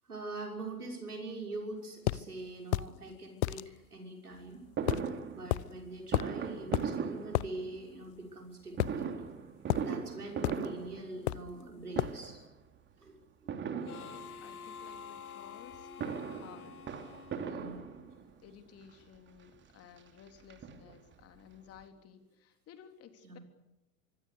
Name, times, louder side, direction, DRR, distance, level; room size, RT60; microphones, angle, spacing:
voice 1, 0.0-4.6 5.3-9.1 9.8-12.4 13.0-13.2 17.5-17.8 23.2-23.4, right 2 dB, 80° right, 2 dB, 6.1 m, -43 dB
sound 1, 2.1-2.2 2.7-2.9 3.4-3.6 4.9-5.1 5.5-5.7 6.1-6.4 6.7-6.9 7.3-7.5 8.8-9.3 9.7-9.9 10.4-10.7 11.3-11.5 12.0-12.2, left 18 dB, 45° left, 0.9 m, -31 dB
Fireworks, 4.8-8.0 8.7-11.7 11.9-12.5 13.5-14.6 15.7-18.4 19.1-19.2 19.5-19.6 20.0-21.2 21.5-21.6 21.8-21.9, right 6 dB, 25° right, 2.8 m, -39 dB
Harmonica, 13.8-18.3, left 7 dB, 75° left, 1.9 m, -49 dB
voice 2, 13.8-16.7 17.4-17.8 18.4-23.4, left 8 dB, 30° left, 7 dB, 3.6 m, -55 dB
25.0 x 24.5 x 6.8 m, 0.93 s
figure-of-eight pair, 90°, 44 cm